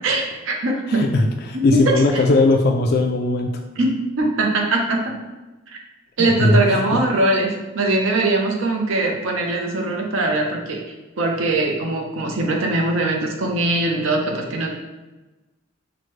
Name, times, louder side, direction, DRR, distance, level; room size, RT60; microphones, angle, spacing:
voice 1, 0.0-1.1 1.5-2.2 3.8-5.2 5.7-5.8 6.2-14.7, right 2 dB, 90° right, 0 dB, 0.7 m, -21 dB
voice 2, 0.9-3.5 6.2-7.0, left 2 dB, 55° left, 2 dB, 0.4 m, -19 dB
6.0 x 2.1 x 3.1 m, 1.1 s
head